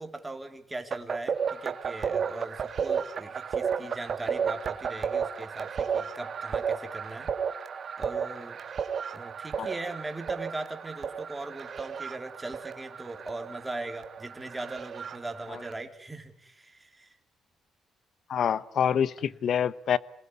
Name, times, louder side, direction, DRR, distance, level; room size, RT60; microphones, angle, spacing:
voice 1, 0.0-7.3 8.0-8.6 9.1-17.2, right 2 dB, 15° right, 5 dB, 3.8 m, -39 dB
sound 1, 0.9-15.7, right 6 dB, 50° right, 1.8 m, -33 dB
voice 2, 18.3-20.0, left 8 dB, 65° left, 18 dB, 1.0 m, -26 dB
27.0 x 20.0 x 9.8 m, 0.66 s
cardioid pair, 90°, 0 cm